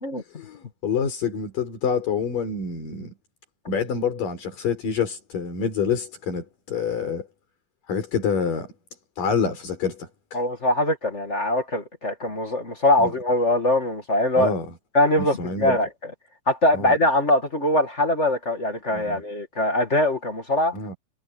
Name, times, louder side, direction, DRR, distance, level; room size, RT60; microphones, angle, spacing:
voice 1, 0.3-3.1 3.7-7.3 7.9-8.7 9.2-10.4 13.0-13.1 14.4-14.7 15.2-15.8 16.7-16.9 18.9-19.2 20.7-21.0, left 6 dB, 70° left, 6.2 m, -27 dB
voice 2, 10.3-14.5 14.9-16.1 16.5-20.7, left 1 dB, 25° left, 1.6 m, -22 dB
omnidirectional pair, 4.0 m